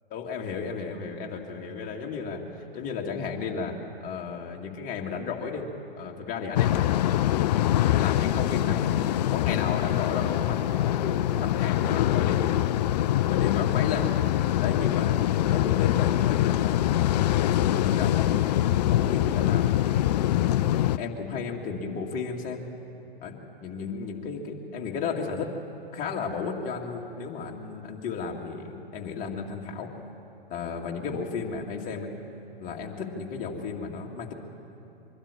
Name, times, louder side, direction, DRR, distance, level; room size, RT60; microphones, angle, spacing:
voice 1, 0.1-3.8 4.0-5.7 6.0-7.0 7.5-12.8 13.3-14.1 14.6-15.2 15.5-16.9 17.4-19.8 20.2-22.7 23.2-25.5 25.9-29.9 30.5-32.2 32.6-34.3, left 5 dB, 25° left, 0 dB, 2.3 m, -34 dB
sound 1, 6.6-21.0, left 13 dB, 45° left, 0.5 m, -24 dB
23.5 x 12.5 x 9.8 m, 2.9 s
figure-of-eight pair, 115°, 30 cm